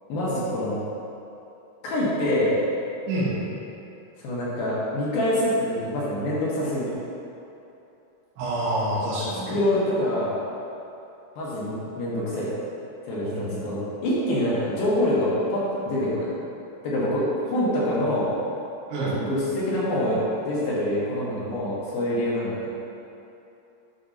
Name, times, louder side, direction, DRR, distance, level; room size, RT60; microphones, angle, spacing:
voice 1, 0.1-0.8 1.8-2.6 4.2-7.0 9.5-10.3 11.4-12.5 13.1-16.3 16.8-18.3 19.1-22.7, left 1 dB, 70° left, -7 dB, 2.8 m, -25 dB
voice 2, 8.4-9.6 13.3-13.7 18.9-19.2, right 1 dB, 75° right, -9 dB, 3.3 m, -27 dB
10.5 x 4.3 x 2.7 m, 2.9 s
omnidirectional pair, 4.7 m